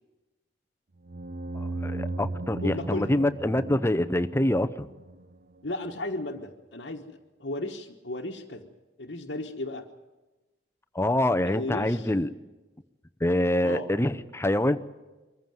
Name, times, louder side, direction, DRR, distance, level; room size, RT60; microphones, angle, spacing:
sound 1, 1.0-5.6, right 2 dB, 50° right, 0.8 m, -37 dB
voice 1, 1.5-4.9 10.9-12.3 13.2-14.8, left 1 dB, 15° left, 10 dB, 0.7 m, -25 dB
voice 2, 2.6-3.2 5.6-8.7 9.0-9.9 11.4-12.1 13.6-13.9, left 2 dB, 65° left, -1 dB, 1.3 m, -35 dB
23.5 x 15.0 x 9.3 m, 1.2 s
head